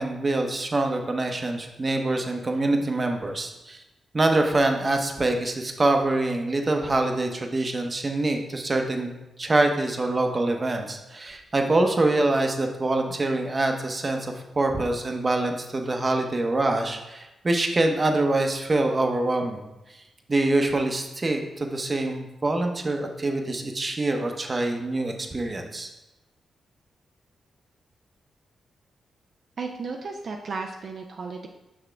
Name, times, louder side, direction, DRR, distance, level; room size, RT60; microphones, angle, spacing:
voice 1, 0.0-3.8 4.1-9.1 9.4-19.6 19.9-20.0 20.3-25.9, right 2 dB, 30° right, 4 dB, 0.8 m, -25 dB
voice 2, 29.6-31.5, right 4 dB, 55° right, 2 dB, 0.5 m, -34 dB
6.2 x 6.0 x 3.4 m, 0.97 s
cardioid pair, 105°, 0 cm